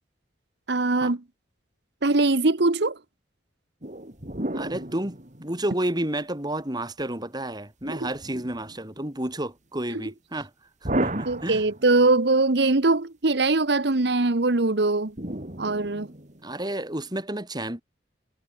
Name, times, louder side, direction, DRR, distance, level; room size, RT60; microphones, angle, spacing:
voice 1, 0.7-1.2 2.0-3.0 9.9-10.1 11.2-15.1 15.6-16.1, right 2 dB, 65° right, 1.2 m, -22 dB
sound 1, 3.8-6.1 7.8-9.0 10.8-12.2 15.2-16.6, right 1 dB, 40° right, 3.5 m, -33 dB
voice 2, 4.5-10.5 10.8-11.6 16.4-17.8, right 1 dB, 25° right, 3.8 m, -31 dB
head